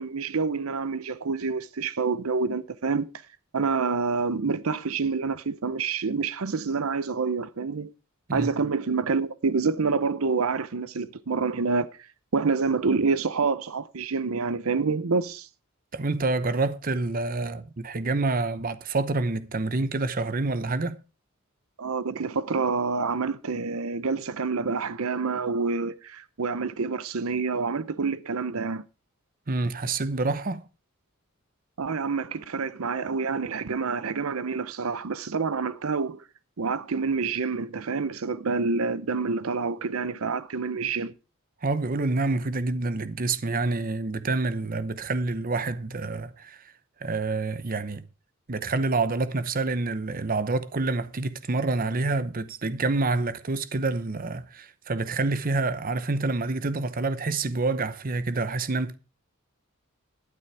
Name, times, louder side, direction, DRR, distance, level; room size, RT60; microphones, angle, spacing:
voice 1, 0.0-3.1 3.5-7.9 8.3-11.9 12.3-15.5 21.8-28.8 31.8-36.2 36.6-41.1, right 4 dB, 75° right, 0.7 m, -27 dB
voice 2, 15.9-21.0 29.5-30.6 41.6-46.6 47.0-48.0 48.5-58.9, right 3 dB, 40° right, 0.8 m, -27 dB
12.0 x 9.5 x 4.7 m
head